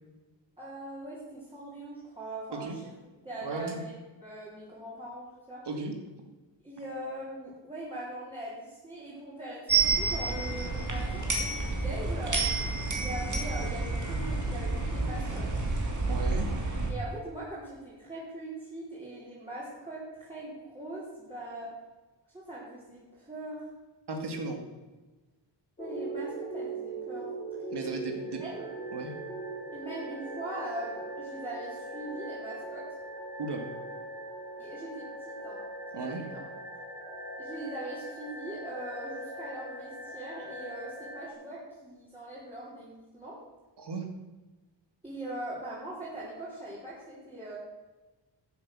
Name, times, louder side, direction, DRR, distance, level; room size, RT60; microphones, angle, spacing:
voice 1, 0.6-2.8 3.2-3.9 4.2-5.6 6.6-15.5 16.9-21.7 22.3-23.7 25.8-27.3 28.1-28.7 29.7-32.9 34.6-35.6 36.2-36.4 37.4-43.4 45.0-47.6, right 1 dB, 10° right, -9 dB, 4.3 m, -41 dB
voice 2, 3.4-3.8 5.7-5.9 16.1-16.5 24.1-24.6 27.7-28.4 28.9-29.1 33.4-33.7 35.9-36.2 43.8-44.1, right 3 dB, 60° right, 4 dB, 2.4 m, -35 dB
sound 1, 9.7-16.9, right 3 dB, 40° right, 2.8 m, -29 dB
sound 2, 25.8-41.3, right 2 dB, 20° left, 3.2 m, -40 dB
13.5 x 8.0 x 6.3 m, 1.2 s
wide cardioid pair, 120°, 46 cm